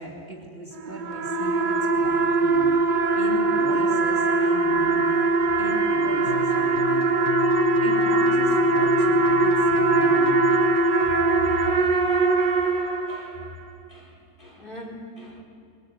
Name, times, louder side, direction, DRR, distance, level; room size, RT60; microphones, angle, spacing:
voice 1, 0.0-2.7 3.1-5.1 5.6-7.3 7.8-10.5, right 2 dB, 35° right, -2 dB, 3.0 m, -37 dB
sound 1, 0.8-13.5, right 3 dB, 75° right, 2.1 m, -21 dB
sound 2, 6.3-11.5, left 8 dB, 70° left, 1.6 m, -37 dB
voice 2, 12.6-13.5 13.9-15.4, left 1 dB, 30° left, -2 dB, 4.0 m, -44 dB
22.5 x 21.0 x 9.2 m, 2.4 s
omnidirectional pair, 1.9 m